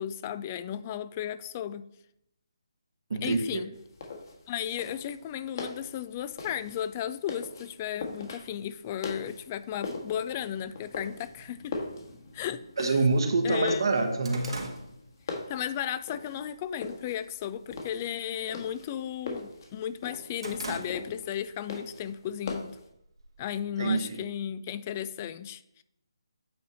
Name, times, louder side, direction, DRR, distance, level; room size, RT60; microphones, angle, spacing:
voice 1, 0.0-1.9 3.2-3.7 4.5-11.8 12.3-13.0 13.4-13.8 15.5-22.8 23.4-25.8, left 10 dB, 25° left, 14 dB, 0.3 m, -34 dB
voice 2, 3.1-3.6 12.8-14.5 23.8-24.3, right 3 dB, 60° right, 5 dB, 1.1 m, -26 dB
sound 1, 3.7-22.9, left 3 dB, 45° left, 1.6 m, -41 dB
sound 2, 12.4-12.5 12.9-13.0 13.4-15.8 16.2-16.5 16.9-17.4 17.7-18.0 18.3-19.5 19.9-21.4 21.7-21.9 22.8-23.6, right 2 dB, 75° right, 1.5 m, -42 dB
8.5 x 4.1 x 4.1 m, 0.78 s
figure-of-eight pair, 150°, 3 cm